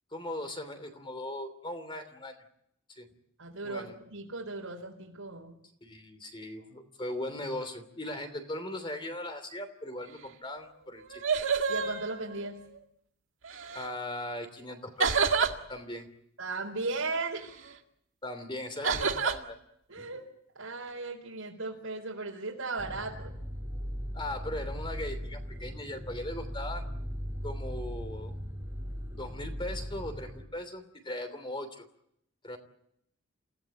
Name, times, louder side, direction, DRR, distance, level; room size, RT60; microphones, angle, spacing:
voice 1, 0.1-2.4 3.0-3.1 3.6-3.9 5.8-11.2 13.7-15.2 15.7-16.1 18.2-19.6 19.9-20.1 24.1-26.8 27.4-28.4 29.1-31.9 32.4-32.6, left 1 dB, 25° left, 8 dB, 3.0 m, -39 dB
voice 2, 3.4-5.6 11.7-12.6 16.4-17.5 19.9-20.3 20.5-23.3, right 3 dB, 85° right, -2 dB, 4.4 m, -36 dB
sound 1, 10.6-10.7 11.0-12.8 13.4-13.9 15.0-15.6 18.8-19.4, right 5 dB, 65° right, 2.0 m, -28 dB
sound 2, 22.8-30.4, equal, 10° right, 2.5 m, -38 dB
28.5 x 16.5 x 9.0 m, 0.76 s
head